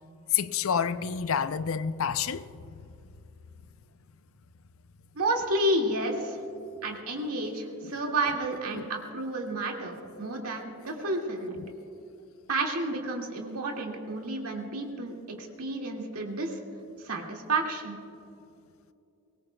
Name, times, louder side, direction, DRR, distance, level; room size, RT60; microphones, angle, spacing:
voice 1, 0.3-2.4 7.8-8.0 8.7-8.8, left 7 dB, 70° left, 0.5 m, -28 dB
voice 2, 5.2-6.4 6.8-11.6 12.5-16.6 17.0-18.0, right 2 dB, 85° right, 2.1 m, -31 dB
23.0 x 19.0 x 2.3 m
head